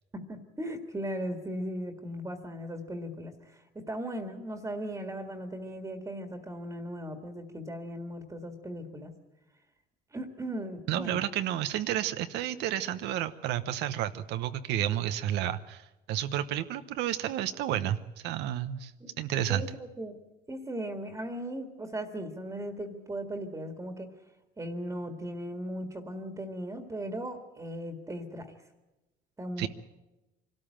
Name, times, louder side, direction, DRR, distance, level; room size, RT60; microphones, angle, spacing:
voice 1, 0.1-9.1 10.1-11.2 19.0-19.1 19.5-19.7 20.0-20.1 20.5-24.1 24.6-28.5 29.4-29.7, equal, 20° right, 6 dB, 1.9 m, -37 dB
voice 2, 10.9-18.0 18.2-18.9 19.2-19.6 29.6-29.7, right 12 dB, 85° right, 10 dB, 0.9 m, -31 dB
23.5 x 13.0 x 8.8 m, 1.0 s
cardioid pair, 110°, 17 cm